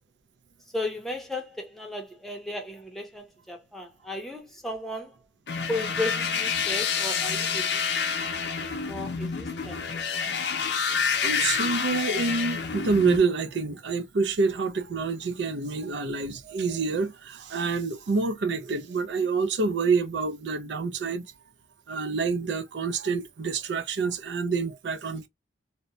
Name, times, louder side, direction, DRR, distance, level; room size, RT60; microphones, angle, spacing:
voice 1, 0.7-5.1 5.7-7.8 8.8-9.8, left 1 dB, ahead, 0.6 m, -35 dB
sound 1, 5.5-13.2, left 6 dB, 65° left, 0.5 m, -28 dB
voice 2, 10.8-21.3 21.9-25.3, right 4 dB, 75° right, 0.5 m, -27 dB
2.8 x 2.1 x 2.6 m
head